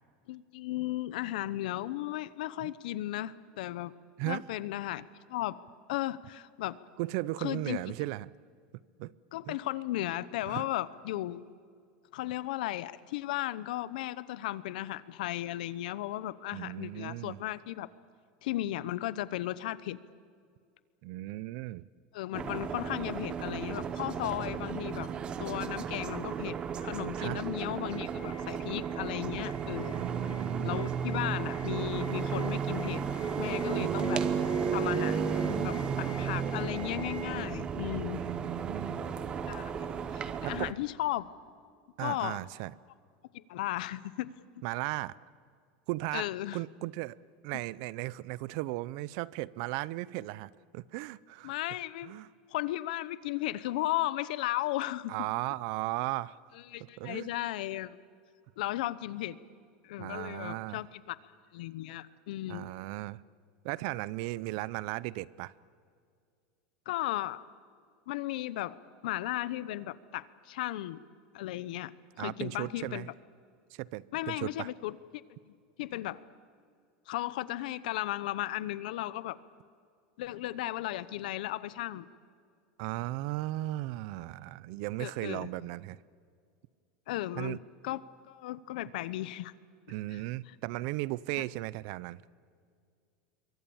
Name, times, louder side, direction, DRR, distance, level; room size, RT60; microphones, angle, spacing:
voice 1, 0.3-3.9 4.2-5.6 5.9-6.8 7.4-7.8 9.3-11.5 12.1-17.9 18.4-20.0 22.1-25.1 25.4-29.9 30.6-33.0 33.4-34.2 34.7-38.2 39.5-39.7 40.1-41.3 42.0-42.4 43.3-44.3 46.1-46.6 51.4-52.1 52.5-55.1 56.7-58.0 58.6-59.4 59.8-61.2 61.5-62.7 66.9-67.4 68.1-68.8 69.0-71.0 71.3-71.9 72.2-73.1 74.1-75.0 75.5-75.6 75.8-76.2 77.1-79.4 80.2-82.1 85.0-85.5 87.1-87.6 87.8-89.5 90.1-90.2 90.5-90.6, left 15 dB, 70° left, 17 dB, 0.9 m, -35 dB
voice 2, 7.0-8.3 9.0-9.1 9.5-9.6 10.5-10.7 16.5-17.4 21.0-21.9 27.2-27.4 29.9-30.9 33.8-33.9 38.1-39.1 40.4-40.7 42.0-42.7 44.6-45.1 45.9-46.3 46.5-47.2 47.4-51.6 52.0-52.3 55.1-56.4 57.0-57.3 60.0-60.8 62.5-63.2 63.6-65.5 72.2-73.1 73.7-74.7 82.8-86.0 87.3-87.6 89.9-92.2, right 18 dB, 50° right, 21 dB, 0.5 m, -36 dB
sound 1, 22.3-40.7, right 7 dB, 20° right, 0.9 m, -34 dB
sound 2, 27.8-37.2, left 2 dB, 15° left, 5.8 m, -50 dB
26.5 x 23.5 x 7.2 m, 2.2 s
supercardioid pair, 170°, 5 cm